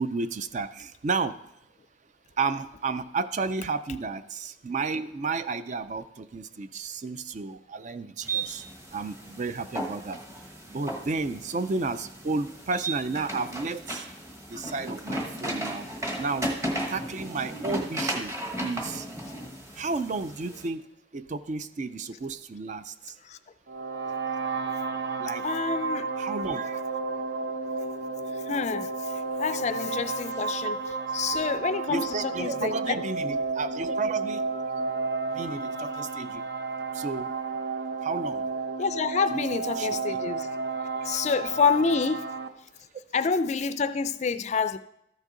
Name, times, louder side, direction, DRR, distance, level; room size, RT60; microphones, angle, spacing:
voice 1, 0.0-1.3 2.4-8.6 8.9-10.2 10.7-14.0 14.5-15.9 16.2-16.5 16.9-18.3 18.6-19.1 19.8-20.8 21.1-22.9 25.2-25.4 26.2-26.8 29.5-29.6 31.9-34.4 35.3-36.4 37.0-37.3 38.0-38.4 39.3-39.5 39.8-40.2, right 4 dB, 40° right, 0.4 m, -32 dB
sound 1, 8.2-20.7, right 1 dB, 15° right, 1.1 m, -35 dB
sound 2, 23.7-42.5, right 4 dB, 65° right, 0.8 m, -32 dB
voice 2, 25.4-26.1 28.5-28.9 29.4-30.8 31.1-33.0 38.8-40.5 41.0-42.3 43.1-44.8, left 5 dB, 40° left, 0.3 m, -27 dB
13.5 x 6.4 x 3.8 m
head